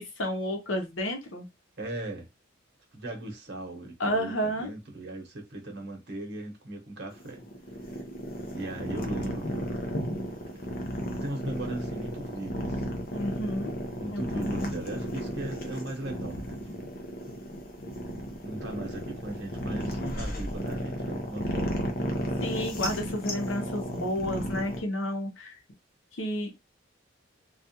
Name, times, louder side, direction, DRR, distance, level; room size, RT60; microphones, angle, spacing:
voice 1, 0.2-1.5 4.0-4.7 13.1-13.7 14.1-14.7 22.4-25.5 26.1-26.5, equal, 80° left, 0.8 m, -31 dB
voice 2, 1.8-2.3 2.9-7.4 7.9-8.0 8.5-9.9 10.5-10.7 11.0-12.9 14.0-17.0 18.4-21.9, right 2 dB, 60° right, 0.9 m, -38 dB
sound 1, 7.1-24.8, equal, 45° left, 0.6 m, -34 dB
2.4 x 2.2 x 2.7 m
head